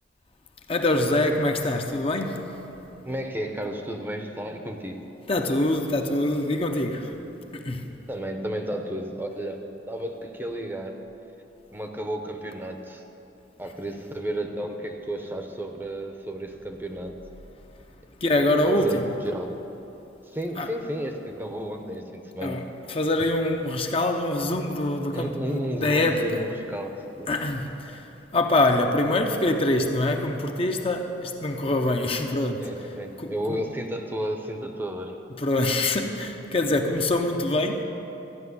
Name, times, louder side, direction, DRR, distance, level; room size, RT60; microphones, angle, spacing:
voice 1, 0.7-2.6 5.3-7.1 7.5-7.8 18.2-19.1 20.6-20.7 22.4-26.4 27.3-28.1 28.3-32.9 33.2-33.6 35.4-37.8, left 1 dB, 30° left, 0.7 m, -25 dB
voice 2, 3.0-5.0 8.1-11.0 11.7-13.0 13.6-17.2 18.6-19.5 20.3-22.6 25.1-27.3 32.6-35.2, right 1 dB, 10° right, 0.8 m, -33 dB
13.5 x 6.1 x 9.6 m
head